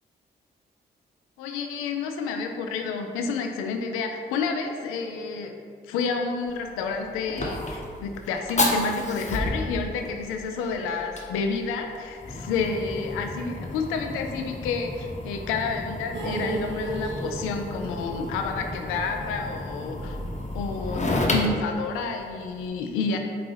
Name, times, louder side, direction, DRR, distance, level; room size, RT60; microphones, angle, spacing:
voice 1, 1.4-5.5 5.9-20.2 20.5-23.2, left 4 dB, 90° left, 4 dB, 0.4 m, -30 dB
Fire, 6.5-22.7, left 1 dB, 35° left, 0.8 m, -32 dB
sound 1, 16.1-20.3 20.5-20.6 21.0-21.1, right 2 dB, 60° right, 0.8 m, -35 dB
4.7 x 2.8 x 3.9 m, 2.2 s
hypercardioid pair, 40°, 21 cm